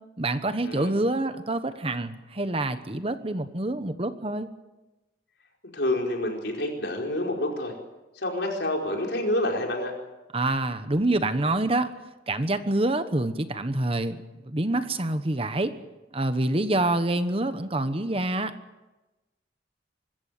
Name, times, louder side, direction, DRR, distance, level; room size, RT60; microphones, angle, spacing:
voice 1, 0.2-4.5 10.3-11.9 12.3-14.2 14.4-15.7 16.1-18.5, right 2 dB, 30° right, 10 dB, 1.2 m, -26 dB
voice 2, 5.7-7.7 8.1-9.9, left 1 dB, 70° left, 1 dB, 5.0 m, -28 dB
25.0 x 14.0 x 9.4 m, 1.1 s
head